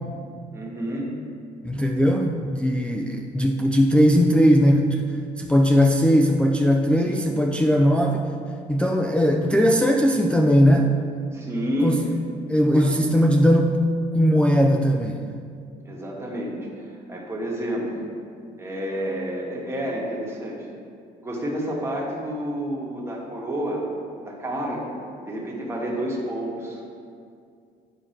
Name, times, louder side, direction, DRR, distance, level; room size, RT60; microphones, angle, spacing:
voice 1, 0.5-1.1 7.0-7.3 11.3-12.0 12.7-12.9 15.8-16.7 17.1-18.0 18.6-20.7 21.2-23.8 24.2-24.8 25.2-26.8, equal, 15° right, -3 dB, 1.7 m, -29 dB
voice 2, 1.6-5.0 5.4-8.2 8.7-10.9 11.8-12.0 12.5-13.8 14.1-15.3, equal, 5° left, 1 dB, 0.4 m, -19 dB
9.4 x 4.5 x 4.5 m, 2.3 s
cardioid pair, 110°, 17 cm